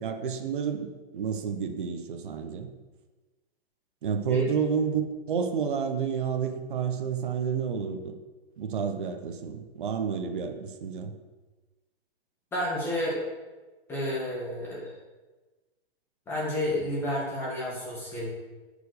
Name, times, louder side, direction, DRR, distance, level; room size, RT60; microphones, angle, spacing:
voice 1, 0.0-2.7 4.0-8.1 8.6-11.1, right 7 dB, 55° right, 5 dB, 1.1 m, -30 dB
voice 2, 12.5-13.2 13.9-14.9 16.3-18.3, left 1 dB, 5° left, -6 dB, 2.0 m, -30 dB
8.9 x 5.2 x 6.6 m, 1.2 s
hypercardioid pair, 175°, 31 cm